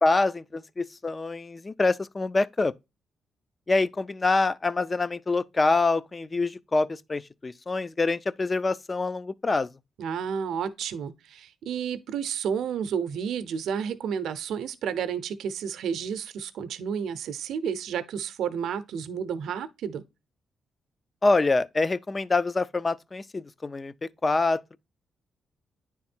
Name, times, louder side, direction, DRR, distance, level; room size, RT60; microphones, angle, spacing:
voice 1, 0.0-2.7 3.7-9.7 21.2-24.8, left 3 dB, 25° left, 0.4 m, -25 dB
voice 2, 10.0-20.0, right 7 dB, 80° right, 0.6 m, -31 dB
9.7 x 3.6 x 4.3 m
cardioid pair, 120°, 0 cm